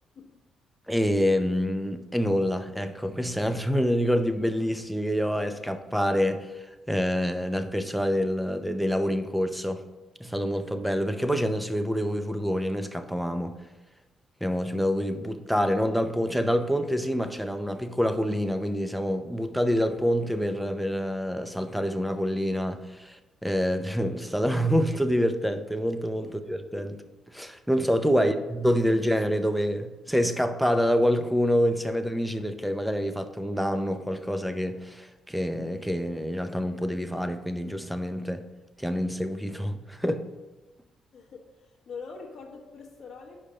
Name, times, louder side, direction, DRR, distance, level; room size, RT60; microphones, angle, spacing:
voice 1, 0.9-9.8 10.2-13.5 14.4-27.0 27.3-38.4 38.8-40.3, equal, ahead, 9 dB, 0.5 m, -27 dB
voice 2, 41.1-43.4, left 5 dB, 50° left, -4 dB, 1.2 m, -43 dB
5.0 x 5.0 x 5.4 m, 1.1 s
cardioid pair, 90°, 0 cm